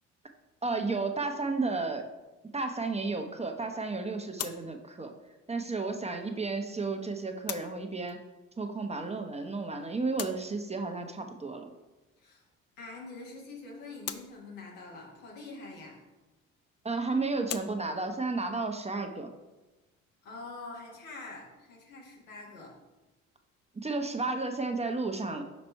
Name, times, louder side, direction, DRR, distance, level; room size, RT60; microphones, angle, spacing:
voice 1, 0.6-2.0 2.5-5.1 5.5-8.2 8.6-11.7 16.8-19.3 23.7-25.4, right 3 dB, 15° right, 5 dB, 0.7 m, -32 dB
sound 1, 1.9-21.2, left 9 dB, 40° left, 0.5 m, -47 dB
voice 2, 12.8-16.0 20.2-22.7, left 3 dB, 85° left, -2 dB, 1.3 m, -45 dB
5.2 x 4.1 x 4.5 m, 1.1 s
hypercardioid pair, 50°, 39 cm